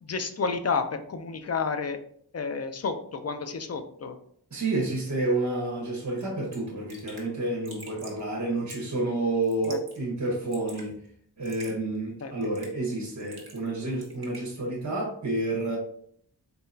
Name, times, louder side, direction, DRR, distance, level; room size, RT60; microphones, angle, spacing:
voice 1, 0.0-2.0 2.3-4.2 9.6-9.8 12.2-12.3, left 5 dB, 40° left, 0.5 m, -30 dB
voice 2, 4.5-11.0 11.4-15.8, right 2 dB, 45° right, 1.3 m, -29 dB
Raindrop / Drip, 6.2-6.3 6.5-6.6 6.9-7.3 7.7-8.2 8.7-9.0 9.4-10.0 10.3-10.9 11.4-11.7 12.4-12.8 13.2-13.7 14.0-14.4, right 2 dB, 60° right, 1.5 m, -46 dB
4.1 x 3.8 x 2.7 m
wide cardioid pair, 90°, 41 cm